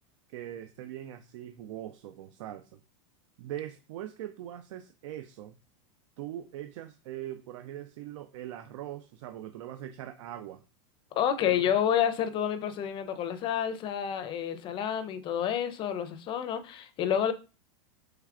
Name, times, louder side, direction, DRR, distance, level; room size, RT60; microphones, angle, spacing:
voice 1, 0.3-2.8 3.4-5.6 6.2-10.6 11.5-11.7, right 12 dB, 65° right, 0.4 m, -41 dB
voice 2, 11.1-17.3, left 9 dB, 30° left, 0.5 m, -29 dB
4.6 x 3.2 x 2.4 m
supercardioid pair, 140°, 17 cm